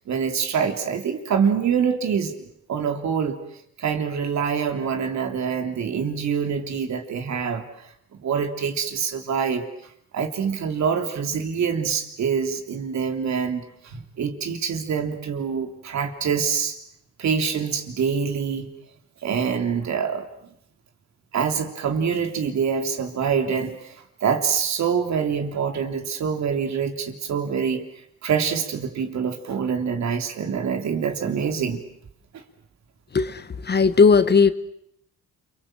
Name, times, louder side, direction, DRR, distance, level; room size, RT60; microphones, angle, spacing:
voice 1, 0.1-2.3 2.7-3.4 3.8-7.9 8.2-16.8 17.2-18.7 19.2-20.3 21.3-27.8 28.2-31.8, right 6 dB, 65° right, 3.3 m, -25 dB
voice 2, 33.1-34.5, left 5 dB, 35° left, 1.3 m, -17 dB
29.5 x 24.0 x 7.6 m
cardioid pair, 90°, 30 cm